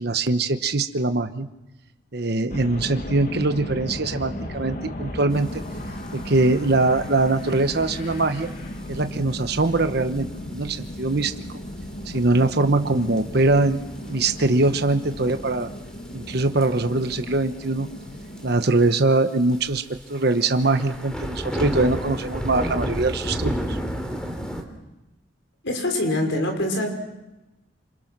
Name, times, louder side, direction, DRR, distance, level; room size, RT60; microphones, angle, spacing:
voice 1, 0.0-1.5 2.1-5.5 6.1-8.5 8.9-11.3 12.1-13.8 14.1-15.7 16.1-17.9 18.4-19.8 20.1-23.8, right 2 dB, 60° right, 8 dB, 1.1 m, -22 dB
sound 1, 2.5-18.5, left 1 dB, 45° left, 2.2 m, -35 dB
sound 2, 6.0-6.1 6.3-6.7 7.4-7.6 8.2-8.3 8.9-9.0 9.3-9.4 9.6-9.7 10.8-11.1 11.5-11.6 12.5-12.6 13.2-13.6 14.0-14.1 14.6-15.3 16.4-16.7 17.0-17.1 17.3-17.4 17.6-17.7 18.4-18.5 18.8-18.9 19.5-24.6, equal, 5° left, 2.9 m, -30 dB
voice 2, 25.6-26.9, left 1 dB, 80° left, 3 dB, 5.7 m, -24 dB
28.0 x 27.0 x 6.1 m, 1.0 s
head